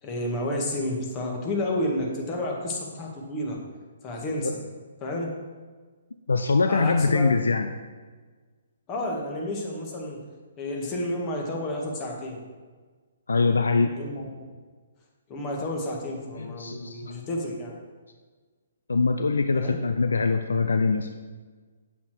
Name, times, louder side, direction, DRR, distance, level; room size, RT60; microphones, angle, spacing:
voice 1, 0.0-3.6 4.0-4.5 5.0-5.3 6.7-7.4 8.9-10.2 10.6-12.4 13.8-14.3 15.3-17.8 19.5-19.8, left 1 dB, 25° left, -1 dB, 2.1 m, -31 dB
voice 2, 6.3-7.7 13.3-13.9 16.4-17.2 18.9-21.1, left 4 dB, 70° left, 7 dB, 0.5 m, -23 dB
8.3 x 8.3 x 4.6 m, 1.4 s
figure-of-eight pair, 130°, 0 cm